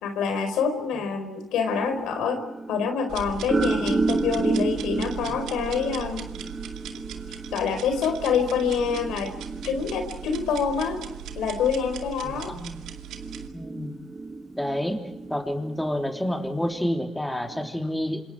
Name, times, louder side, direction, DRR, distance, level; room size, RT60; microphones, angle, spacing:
voice 1, 0.0-2.4 2.7-6.3 7.5-9.3 9.6-11.0 11.4-12.5, left 6 dB, 85° left, 7 dB, 4.6 m, -26 dB
sound 1, 1.7-16.8 17.4-17.7, right 3 dB, 30° right, 2.7 m, -32 dB
sound 2, 3.1-13.5, right 10 dB, 85° right, 2.4 m, -39 dB
voice 2, 12.2-12.8 13.5-13.9 14.5-15.0 15.3-18.2, equal, 5° left, 3 dB, 3.7 m, -29 dB
27.5 x 27.5 x 4.9 m, 0.95 s
cardioid pair, 90°, 0 cm